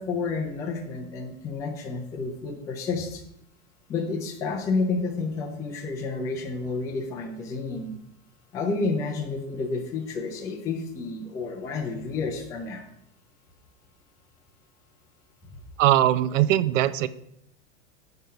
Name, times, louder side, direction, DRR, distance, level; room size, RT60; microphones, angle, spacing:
voice 1, 0.0-3.2 3.9-8.0 8.5-12.8, left 4 dB, 10° left, 2 dB, 0.4 m, -30 dB
voice 2, 15.8-17.1, right 13 dB, 75° right, 16 dB, 0.6 m, -20 dB
7.6 x 5.4 x 5.6 m, 0.76 s
supercardioid pair, 170°, 38 cm